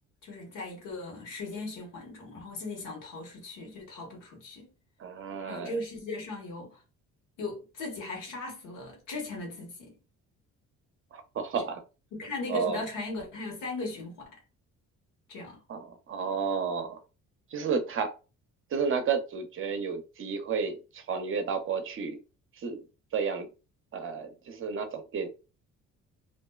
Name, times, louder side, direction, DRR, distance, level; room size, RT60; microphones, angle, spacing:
voice 1, 0.2-4.7 5.5-6.8 7.4-10.0 12.1-14.4 15.3-15.6, left 2 dB, 75° left, 1.2 m, -38 dB
voice 2, 5.0-5.8 11.1-11.8 12.5-12.8 15.7-17.0 17.5-18.1 18.7-22.2 22.6-22.8 23.1-23.5 23.9-25.3, right 5 dB, 40° right, 0.6 m, -31 dB
2.5 x 2.1 x 2.3 m
cardioid pair, 80°, 32 cm